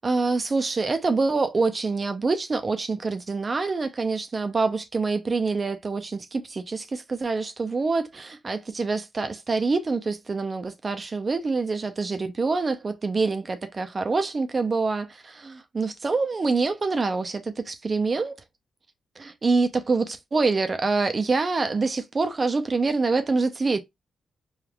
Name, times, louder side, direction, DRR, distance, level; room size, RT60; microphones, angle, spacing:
voice 1, 0.0-18.4 19.2-23.8, right 3 dB, 40° right, 0.5 m, -26 dB
3.3 x 2.4 x 2.3 m
supercardioid pair, 50°, 0 cm